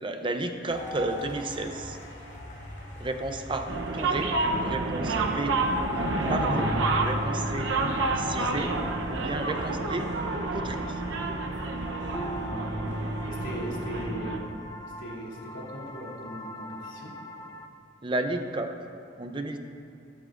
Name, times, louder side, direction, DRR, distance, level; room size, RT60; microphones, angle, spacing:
voice 1, 0.0-2.0 3.0-4.3 4.6-5.5 6.3-6.7 6.9-7.7 8.2-8.7 9.1-10.1 10.5-11.0 18.0-18.7 19.2-19.6, right 2 dB, 25° right, 6 dB, 0.6 m, -32 dB
sound 1, 0.7-14.1, left 1 dB, 65° left, 2.6 m, -40 dB
sound 2, 3.7-14.4, right 3 dB, 85° right, 0.8 m, -29 dB
sound 3, 6.2-17.7, left 1 dB, 20° left, 0.5 m, -38 dB
voice 2, 13.2-14.5 15.0-17.1, equal, 85° left, -5 dB, 3.0 m, -38 dB
13.5 x 12.5 x 2.5 m, 2.5 s
head